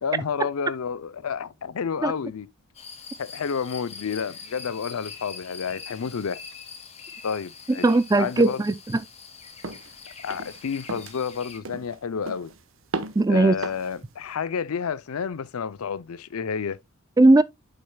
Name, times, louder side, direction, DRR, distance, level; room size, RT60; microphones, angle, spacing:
voice 1, 0.0-2.5 3.2-6.4 7.2-7.8 8.2-8.6 10.2-12.5 13.3-16.8, left 6 dB, 75° left, 0.5 m, -30 dB
sound 1, 2.7-11.6, left 5 dB, 30° left, 1.2 m, -43 dB
voice 2, 7.8-9.0 13.2-13.5 17.2-17.4, right 2 dB, 15° right, 0.3 m, -18 dB
sound 2, 9.6-9.9 10.3-10.6 10.9-11.2 11.7-12.0 12.3-12.6 12.9-13.3 13.6-13.9, right 3 dB, 60° right, 1.0 m, -35 dB
8.7 x 6.6 x 2.2 m
head